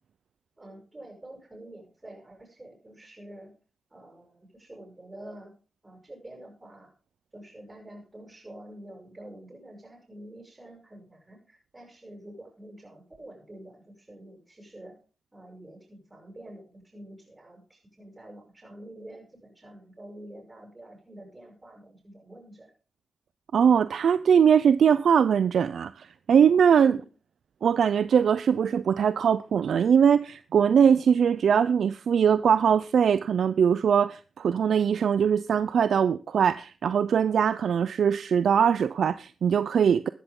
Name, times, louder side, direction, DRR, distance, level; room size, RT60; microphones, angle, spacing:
voice 1, 0.6-3.5 3.9-5.5 5.8-6.9 7.3-15.0 15.3-22.7 26.8-27.1, right 1 dB, 25° right, 7.8 m, -47 dB
voice 2, 23.5-27.0 27.6-40.1, right 7 dB, 80° right, 0.5 m, -21 dB
14.0 x 12.5 x 3.8 m
cardioid pair, 55°, 0 cm